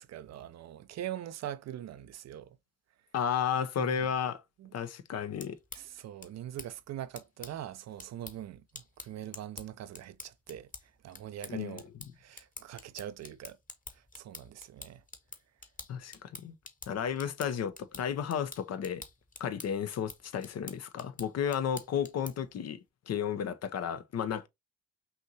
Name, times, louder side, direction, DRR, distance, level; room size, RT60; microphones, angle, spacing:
voice 1, 0.0-2.6 3.8-4.1 4.6-4.7 5.7-11.8 12.1-13.6 13.9-15.0, right 11 dB, 55° right, 0.5 m, -43 dB
voice 2, 3.1-4.4 4.7-5.6 11.5-11.8 15.9-16.5 16.9-19.0 19.4-22.8 23.1-24.5, left 8 dB, 50° left, 0.7 m, -33 dB
sound 1, 5.3-22.6, left 3 dB, 25° left, 1.2 m, -50 dB
5.6 x 2.7 x 2.8 m
hypercardioid pair, 55°, 33 cm